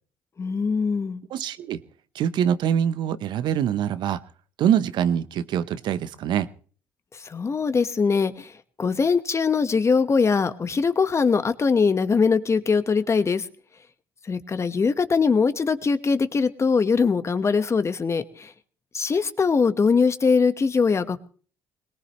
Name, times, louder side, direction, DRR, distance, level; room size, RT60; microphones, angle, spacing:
voice 1, 0.4-1.2 7.1-8.5 8.8-13.5 14.3-18.5 18.9-21.3, left 5 dB, 35° left, 11 dB, 1.3 m, -22 dB
voice 2, 1.3-1.8 2.1-4.2 4.6-6.5, right 9 dB, 65° right, 14 dB, 0.8 m, -24 dB
21.5 x 18.5 x 3.1 m, 0.42 s
supercardioid pair, 65°, 8 cm